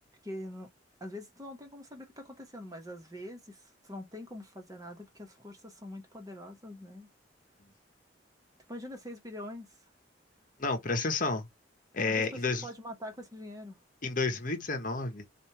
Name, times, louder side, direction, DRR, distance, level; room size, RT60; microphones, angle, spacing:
voice 1, 0.2-0.7 1.0-7.1 8.7-9.9 12.1-13.8, left 1 dB, 20° right, 1.3 m, -44 dB
voice 2, 10.6-11.5 11.9-12.7 14.0-15.2, left 3 dB, 45° left, 1.1 m, -30 dB
5.3 x 2.6 x 3.1 m
head